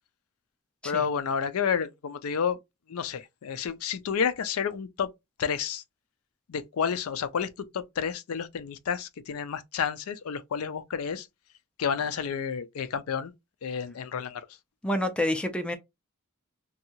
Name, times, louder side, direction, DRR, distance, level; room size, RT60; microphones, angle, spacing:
voice 1, 0.8-2.6 2.9-5.1 5.4-5.8 6.5-11.3 11.8-13.3 13.6-14.4, left 7 dB, 80° left, 0.4 m, -30 dB
voice 2, 14.8-15.8, left 1 dB, 5° left, 0.3 m, -28 dB
2.7 x 2.3 x 2.7 m
head